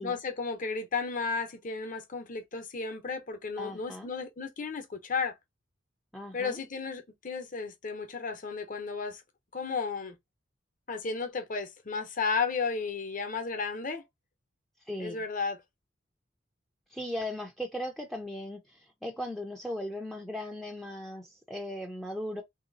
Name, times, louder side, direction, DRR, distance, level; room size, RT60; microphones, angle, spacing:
voice 1, 0.0-5.4 6.3-9.2 9.5-10.2 10.9-14.0 15.0-15.6, left 4 dB, 40° left, 0.9 m, -33 dB
voice 2, 3.6-4.1 6.1-6.6 14.9-15.2 16.9-22.4, left 1 dB, ahead, 0.5 m, -38 dB
3.2 x 2.9 x 4.0 m
head